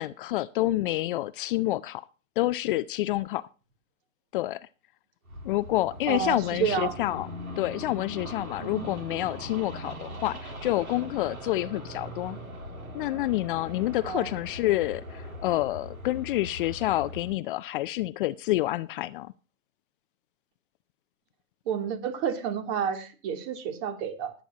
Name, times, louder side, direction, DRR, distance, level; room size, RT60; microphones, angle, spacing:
voice 1, 0.0-2.1 2.4-3.4 4.3-4.6 5.4-7.3 7.6-12.4 12.9-19.3, left 16 dB, 40° left, 0.5 m, -28 dB
sound 1, 5.3-17.3, equal, 85° right, 3.7 m, -41 dB
voice 2, 6.1-7.0 8.6-8.9 14.1-14.3 21.7-24.3, right 7 dB, 45° right, 3.0 m, -30 dB
20.0 x 9.0 x 2.8 m
hypercardioid pair, 110°, 42 cm